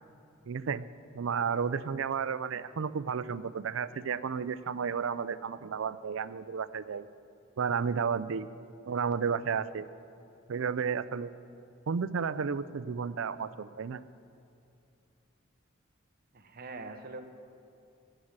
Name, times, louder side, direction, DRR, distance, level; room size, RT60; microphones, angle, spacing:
voice 1, 0.5-0.8 1.1-7.1 7.6-8.5 8.9-9.8 10.5-11.3 11.9-14.0, right 6 dB, 70° right, 15 dB, 0.4 m, -32 dB
voice 2, 16.3-17.2, right 3 dB, 50° right, 6 dB, 1.1 m, -43 dB
13.0 x 7.3 x 9.5 m, 2.6 s
head